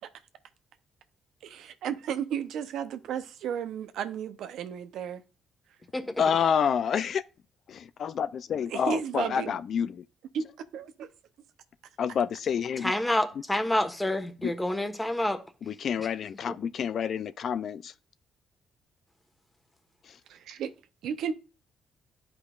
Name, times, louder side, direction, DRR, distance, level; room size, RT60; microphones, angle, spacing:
voice 1, 1.4-5.2 8.7-9.6 10.3-10.4 10.7-11.1 20.3-20.7 21.0-21.3, right 7 dB, 80° right, 0.7 m, -33 dB
voice 2, 6.2-7.2 7.7-10.0 12.0-12.9 14.4-14.5 15.6-17.9 20.0-20.2, left 7 dB, 60° left, 0.4 m, -28 dB
voice 3, 12.8-15.4 16.0-16.1, left 1 dB, 10° left, 1.2 m, -28 dB
11.5 x 5.1 x 2.4 m
cardioid pair, 90°, 0 cm